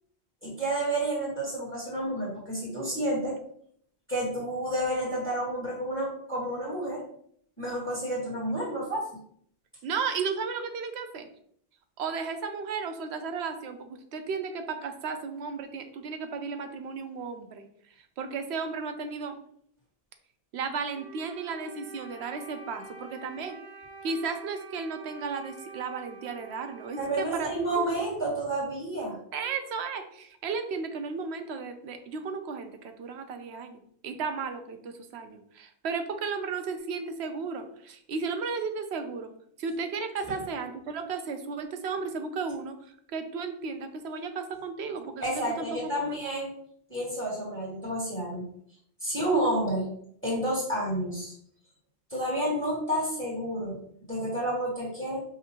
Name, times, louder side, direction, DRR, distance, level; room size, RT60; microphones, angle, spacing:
voice 1, 0.4-3.3 4.1-7.0 7.6-9.1 27.0-29.2 45.2-46.5 46.9-48.5 49.0-49.9 50.2-51.3 52.1-53.7 54.1-55.2, right 1 dB, 10° left, -6 dB, 1.6 m, -30 dB
voice 2, 9.8-11.3 12.0-17.6 18.2-19.4 20.5-23.6 24.0-27.8 29.3-39.3 39.6-42.8 43.1-46.2, right 5 dB, 85° right, 7 dB, 0.9 m, -34 dB
Wind instrument woodwind instrument, 20.9-28.5, right 4 dB, 45° right, 0.7 m, -47 dB
5.2 x 2.6 x 2.8 m, 0.64 s
omnidirectional pair, 1.1 m